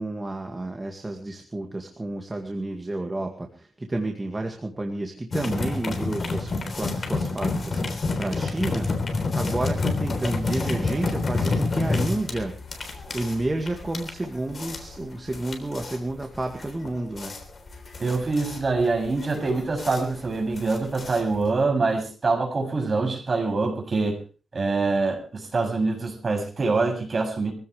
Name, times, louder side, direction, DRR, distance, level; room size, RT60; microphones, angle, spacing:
voice 1, 0.0-9.1 9.3-12.5 13.1-17.3, right 2 dB, 20° right, 3 dB, 2.0 m, -30 dB
sound 1, 5.3-21.6, left 3 dB, 45° left, 3.6 m, -29 dB
voice 2, 18.0-24.2 24.5-27.5, right 3 dB, 35° right, 2 dB, 7.0 m, -25 dB
24.0 x 16.0 x 3.3 m, 0.36 s
wide cardioid pair, 130°, 0 cm